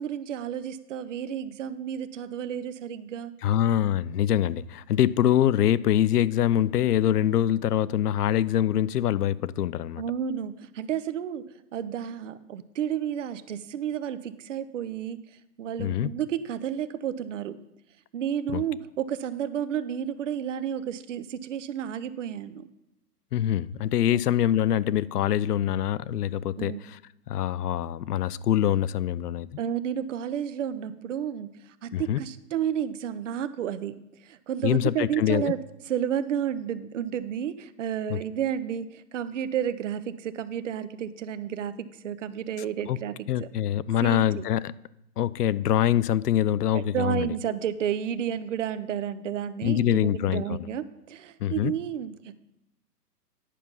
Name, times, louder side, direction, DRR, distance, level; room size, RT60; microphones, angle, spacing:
voice 1, 0.0-3.3 10.0-17.6 18.1-22.7 24.1-24.2 26.6-26.8 29.6-35.6 35.9-43.5 44.0-44.5 46.7-52.4, right 9 dB, 50° right, 0.6 m, -31 dB
voice 2, 3.4-10.0 15.8-16.1 18.5-18.6 23.3-27.0 27.3-29.5 31.9-32.2 34.6-35.5 38.1-38.2 42.8-43.0 43.3-44.7 45.2-47.3 49.6-50.6 51.4-51.7, left 11 dB, 75° left, 0.5 m, -24 dB
10.0 x 5.9 x 5.4 m
hypercardioid pair, 155°, 47 cm